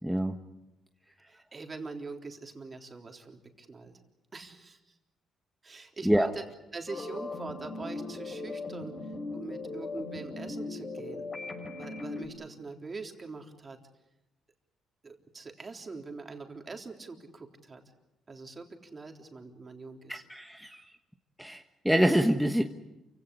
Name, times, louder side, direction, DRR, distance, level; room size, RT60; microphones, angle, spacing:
voice 1, 0.0-0.3 6.0-6.3 20.1-21.0 21.4-22.6, equal, ahead, 4 dB, 1.3 m, -26 dB
voice 2, 1.3-3.9 4.3-5.0 5.6-6.4 6.7-11.2 11.7-13.8 15.0-17.8 18.3-20.2, right 3 dB, 30° right, 3 dB, 3.6 m, -43 dB
sound 1, 6.9-12.3, left 3 dB, 40° left, 6.8 m, -38 dB
28.5 x 17.0 x 9.9 m, 0.98 s
cardioid pair, 90°, 0 cm